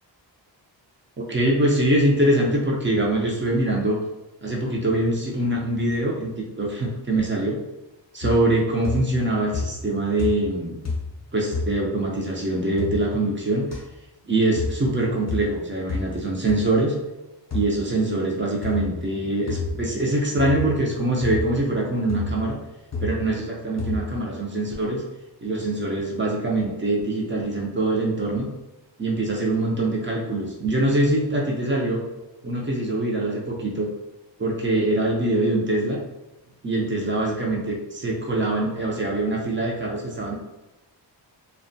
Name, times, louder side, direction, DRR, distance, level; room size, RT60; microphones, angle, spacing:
voice 1, 1.2-4.0 4.4-6.3 6.6-7.6 8.1-10.8 11.3-13.7 14.2-16.9 17.5-22.6 23.0-25.0 25.4-28.5 29.0-32.0 32.4-33.9 34.4-36.0 36.6-40.3, right 1 dB, 25° right, -2 dB, 0.4 m, -23 dB
sound 1, 8.2-8.6 8.8-9.3 9.5-9.9 10.2-10.6 10.8-11.2 11.5-11.7 12.8-13.0 13.7-13.8 14.6-14.8 15.3-15.5 15.9-16.1 16.5-16.6 17.5-17.7 18.6-18.9 19.5-19.8 20.4-20.7 21.2-21.4 22.1-22.4 22.9-23.2 23.8-24.0, left 3 dB, 40° left, 0.6 m, -29 dB
2.5 x 2.2 x 2.6 m, 0.99 s
wide cardioid pair, 135°, 44 cm